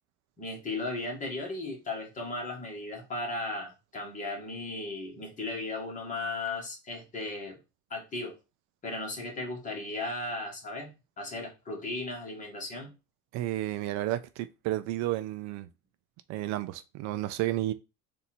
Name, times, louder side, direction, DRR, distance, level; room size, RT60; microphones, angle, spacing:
voice 1, 0.4-7.6 7.9-8.3 8.8-12.9, left 2 dB, 25° left, 1.6 m, -36 dB
voice 2, 13.3-15.7 16.3-17.7, right 15 dB, 65° right, 0.5 m, -32 dB
4.1 x 2.7 x 4.3 m
cardioid pair, 150°, 30 cm